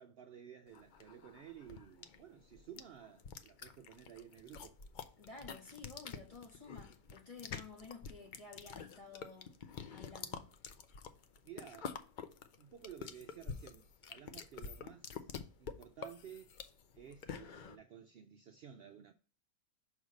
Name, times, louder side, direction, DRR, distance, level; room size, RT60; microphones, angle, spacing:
voice 1, 0.0-4.8 11.4-15.3 15.6-16.6 17.0-19.1, right 9 dB, 80° right, 0.5 m, -54 dB
sound 1, 0.7-17.8, left 6 dB, 80° left, 0.4 m, -48 dB
voice 2, 5.2-9.5 9.9-10.5, left 4 dB, 25° left, 1.3 m, -53 dB
6.3 x 3.2 x 5.1 m
omnidirectional pair, 1.6 m